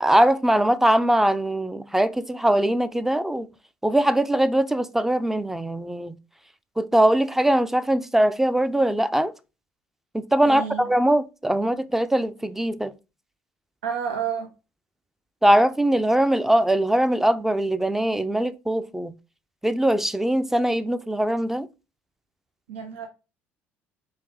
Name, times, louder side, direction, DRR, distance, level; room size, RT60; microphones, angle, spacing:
voice 1, 0.0-3.5 3.8-6.2 6.8-9.3 10.1-12.9 15.4-19.1 19.6-21.7, right 1 dB, 5° right, 0.4 m, -21 dB
voice 2, 10.5-10.8 13.8-14.5 22.7-23.1, right 7 dB, 85° right, 0.5 m, -29 dB
4.6 x 2.7 x 3.6 m
hypercardioid pair, 65°, 6 cm